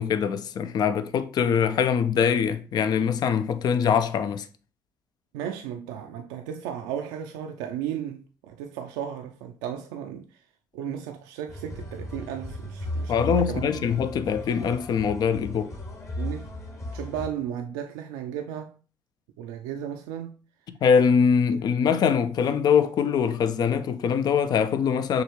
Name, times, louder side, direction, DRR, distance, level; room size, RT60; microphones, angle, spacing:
voice 1, 0.0-4.5 13.1-15.8 20.8-25.2, left 7 dB, 60° left, 0.5 m, -23 dB
voice 2, 5.3-10.3 10.7-13.8 16.2-16.5 16.9-18.7 19.4-20.4 21.5-21.6, right 9 dB, 90° right, 0.4 m, -35 dB
sound 1, 11.5-17.3, left 1 dB, 40° left, 1.4 m, -35 dB
6.4 x 2.4 x 3.0 m
supercardioid pair, 55°, 8 cm